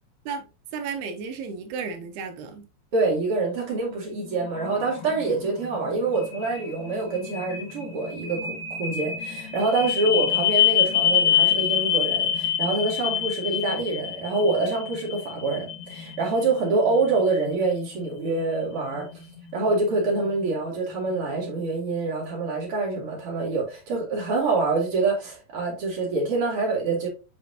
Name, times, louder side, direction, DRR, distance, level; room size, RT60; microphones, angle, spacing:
voice 1, 0.7-2.7, right 5 dB, 75° right, 2.8 m, -33 dB
voice 2, 2.9-19.1 19.5-27.1, right 3 dB, 40° right, 2.7 m, -26 dB
sound 1, 3.7-21.8, left 9 dB, 65° left, 3.3 m, -28 dB
6.9 x 4.9 x 2.8 m
omnidirectional pair, 5.0 m